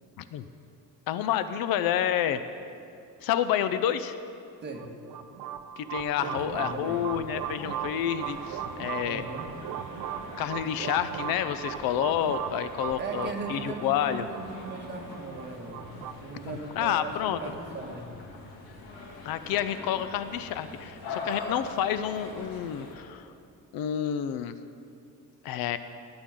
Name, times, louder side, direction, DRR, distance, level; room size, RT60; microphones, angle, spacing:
voice 1, 1.1-2.4 3.2-4.1 5.8-9.2 10.4-14.2 16.5-17.4 19.2-23.3 23.7-24.6 25.4-25.8, left 10 dB, 75° left, 12 dB, 0.7 m, -29 dB
sound 1, 4.7-16.1, right 10 dB, 55° right, 0.6 m, -38 dB
sound 2, 6.2-23.0, left 3 dB, 90° left, 2.2 m, -43 dB
voice 2, 6.2-7.1 9.0-9.5 13.0-18.2, right 3 dB, 30° right, 0 dB, 1.7 m, -38 dB
20.0 x 9.0 x 3.8 m, 2.5 s
cardioid pair, 130°, 36 cm